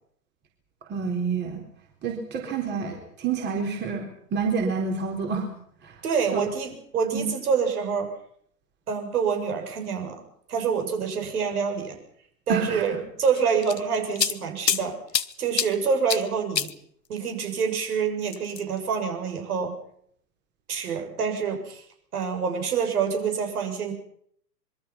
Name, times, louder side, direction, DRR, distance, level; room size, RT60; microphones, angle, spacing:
voice 1, 0.9-1.6 2.0-5.5 5.8-5.9 6.3-6.5 7.1-7.3 12.5-13.0, right 5 dB, 20° right, 2 dB, 4.1 m, -28 dB
voice 2, 6.0-8.1 8.9-10.2 10.5-12.0 12.5-15.0 15.4-16.7 17.1-19.8 20.7-21.8 22.1-23.9, right 6 dB, 65° right, 4 dB, 7.2 m, -26 dB
sound 1, 13.3-14.8 15.1-15.7 16.1-16.2 16.5-16.7 18.3-18.8, left 7 dB, 90° left, 1.3 m, -26 dB
26.5 x 23.0 x 5.9 m, 0.66 s
hypercardioid pair, 125°, 49 cm